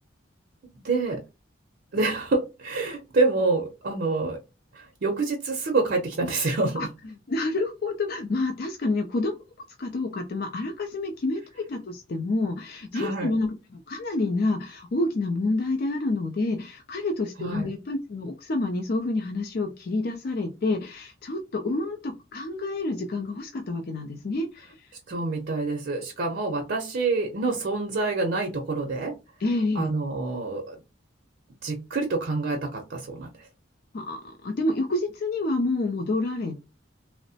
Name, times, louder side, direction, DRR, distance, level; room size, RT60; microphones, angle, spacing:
voice 1, 0.8-1.2 1.9-4.4 4.7-6.8 12.9-13.4 17.4-17.7 25.1-29.2 29.7-30.8 31.6-33.3, right 3 dB, 55° right, 2 dB, 0.6 m, -27 dB
voice 2, 7.3-9.4 9.8-24.7 29.4-29.9 33.9-36.7, left 2 dB, 50° left, 4 dB, 0.4 m, -28 dB
3.0 x 2.0 x 2.7 m, 0.27 s
head